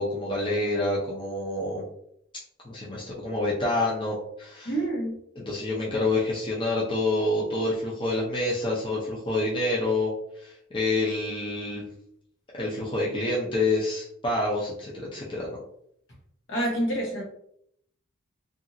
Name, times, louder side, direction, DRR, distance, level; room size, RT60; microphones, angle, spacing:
voice 1, 0.0-1.8 2.6-4.7 5.4-10.1 10.4-11.8 12.5-15.5, left 2 dB, 25° left, -5 dB, 0.6 m, -27 dB
voice 2, 4.6-5.1 16.5-17.2, right 1 dB, 60° left, -2 dB, 1.0 m, -27 dB
2.9 x 2.5 x 2.6 m, 0.70 s
head